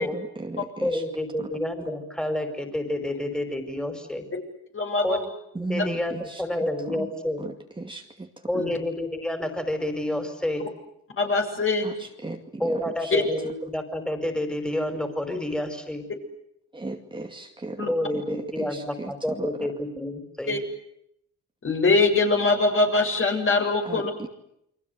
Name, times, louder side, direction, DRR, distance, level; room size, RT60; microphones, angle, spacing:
voice 1, 0.0-1.0 1.4-1.5 5.5-6.4 6.9-7.1 7.4-8.3 8.5-8.6 11.8-13.1 16.7-19.5 23.8-24.3, right 2 dB, 15° right, 3 dB, 2.3 m, -36 dB
voice 2, 0.8-4.2 5.0-5.3 5.6-7.4 8.5-10.7 12.6-16.0 17.9-20.6, left 1 dB, 5° left, 7 dB, 5.0 m, -29 dB
voice 3, 4.7-5.2 8.5-8.7 11.2-12.1 13.1-13.2 17.8-17.9 20.5-20.6 21.6-24.1, left 3 dB, 45° left, 3 dB, 7.3 m, -22 dB
29.5 x 24.0 x 8.1 m, 0.77 s
cardioid pair, 90°, 30 cm